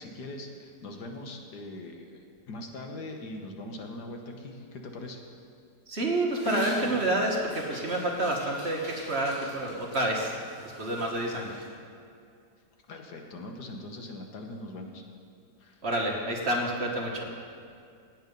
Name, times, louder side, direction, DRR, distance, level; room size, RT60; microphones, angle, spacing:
voice 1, 0.0-5.2 12.9-15.0 15.6-15.9, left 2 dB, 70° left, 3 dB, 1.8 m, -41 dB
voice 2, 5.9-10.4 10.8-11.6 15.8-17.3, right 1 dB, 40° right, 0 dB, 1.6 m, -29 dB
Dog, 6.3-11.7, equal, 55° left, 4.2 m, -40 dB
16.5 x 8.9 x 5.4 m, 2.4 s
omnidirectional pair, 1.8 m